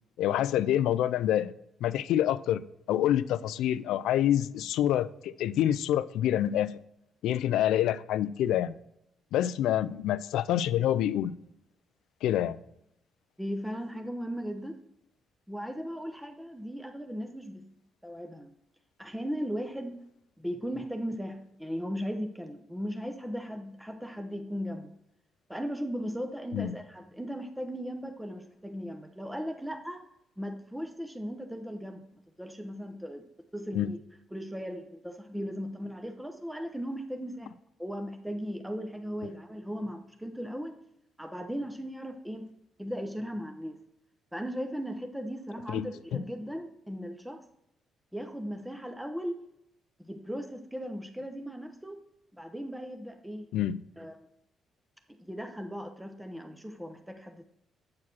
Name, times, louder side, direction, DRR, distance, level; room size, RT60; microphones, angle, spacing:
voice 1, 0.2-1.5 1.8-2.6 2.9-6.8 7.2-8.7 9.3-11.3 12.2-12.6 26.5-26.7 33.7-33.9 45.7-46.2 53.5-53.8, left 11 dB, 85° left, 0.4 m, -27 dB
voice 2, 13.4-14.8 15.5-17.7 18.0-18.5 19.0-20.0 20.4-24.9 25.5-30.1 30.4-32.0 32.4-33.2 33.5-34.0 34.3-37.5 37.8-40.8 41.2-42.4 42.8-43.8 44.3-47.4 48.1-49.4 50.0-52.0 52.3-53.5 54.0-54.3 55.1-57.5, equal, 5° right, 0.8 m, -37 dB
8.4 x 4.9 x 6.0 m
cardioid pair, 90°, 0 cm